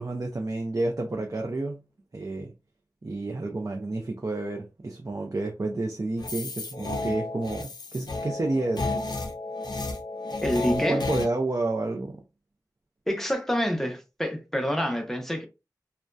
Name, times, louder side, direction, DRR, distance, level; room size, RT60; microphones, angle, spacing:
voice 1, 0.0-1.8 2.1-2.5 3.0-9.0 10.7-12.2, right 2 dB, 45° right, 0.4 m, -30 dB
sound 1, 6.2-11.3, left 3 dB, 75° left, 0.5 m, -32 dB
voice 2, 10.4-11.0 13.1-15.4, equal, 5° left, 0.6 m, -27 dB
2.6 x 2.1 x 2.2 m
wide cardioid pair, 55°, 7 cm